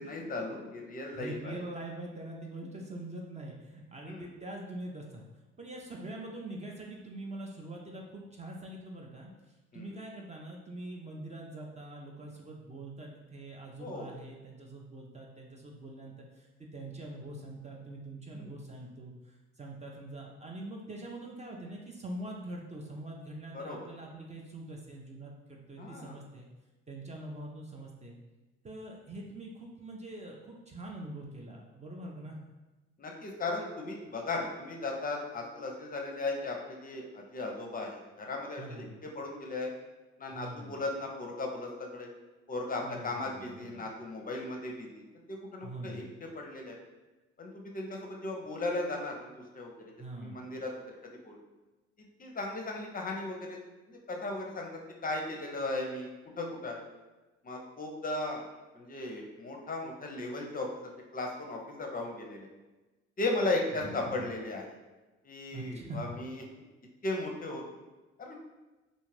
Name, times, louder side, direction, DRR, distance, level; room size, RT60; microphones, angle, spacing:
voice 1, 0.0-1.6 4.0-4.3 9.7-9.9 13.8-14.1 18.3-18.5 23.5-23.8 25.8-26.1 33.0-38.9 39.2-39.7 40.2-42.1 42.5-46.0 46.4-46.8 47.4-49.7 50.2-50.7 51.2-51.4 52.0-53.6 53.9-54.7 55.0-56.1 56.4-56.9 57.4-58.4 58.7-62.5 63.2-64.6 65.2-66.4 67.0-67.6 68.2-68.3, left 2 dB, 30° left, 1 dB, 0.5 m, -36 dB
voice 2, 1.1-5.2 5.6-26.5 26.9-28.2 28.6-32.4 38.6-38.9 40.3-40.8 42.8-43.8 45.6-46.1 49.9-50.5 63.8-64.2 65.5-66.1, right 1 dB, 25° right, -1 dB, 0.5 m, -44 dB
2.5 x 2.4 x 3.2 m, 1.1 s
supercardioid pair, 65°, 30 cm